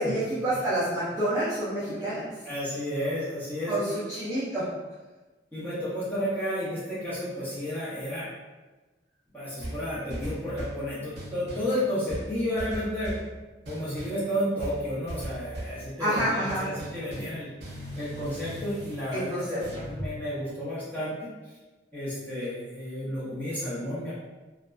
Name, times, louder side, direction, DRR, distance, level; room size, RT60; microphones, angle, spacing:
voice 1, 0.0-2.3 3.7-4.7 16.0-16.7 19.1-19.8, right 1 dB, 15° right, -12 dB, 0.5 m, -28 dB
voice 2, 2.4-4.0 5.5-8.3 9.3-13.1 13.7-17.5 18.0-21.3 21.9-24.1, equal, 10° left, -12 dB, 0.9 m, -32 dB
sound 1, 9.6-10.8 11.1-11.7 12.1-13.3 13.6-14.2 14.6-15.8 16.2-20.1, equal, 60° right, 0.6 m, -38 dB
2.7 x 2.2 x 2.3 m, 1.2 s
head